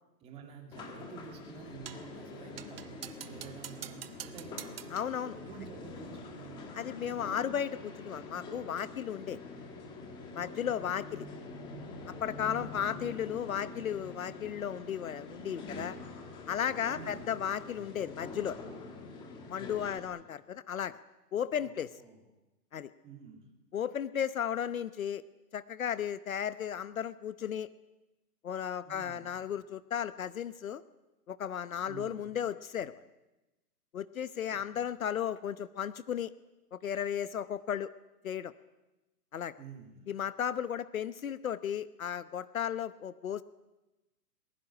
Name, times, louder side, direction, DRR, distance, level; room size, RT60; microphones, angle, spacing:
voice 1, 0.2-4.7 5.3-6.8 10.4-10.7 12.5-12.7 16.9-17.3 19.8-20.2 21.6-22.2 23.0-23.5 28.8-29.2 31.8-32.2 34.5-34.9 39.6-40.1, right 6 dB, 10° right, 3 dB, 2.6 m, -50 dB
sound 1, 0.7-20.0, left 3 dB, 10° left, 1.5 m, -45 dB
sound 2, 1.9-2.1 2.6-5.2, right 9 dB, 35° right, 1.0 m, -46 dB
voice 2, 4.9-5.4 6.7-9.4 10.3-11.3 12.1-16.0 16.5-18.6 19.5-21.0 21.3-21.9 22.7-22.9 23.7-25.2 25.5-27.7 28.4-30.8 31.3-33.0 33.9-36.3 36.7-37.9 38.2-38.5 39.3-39.6 40.1-43.4, left 9 dB, 55° left, 15 dB, 1.0 m, -35 dB
22.0 x 21.0 x 10.0 m, 1.0 s
hypercardioid pair, 170°, 49 cm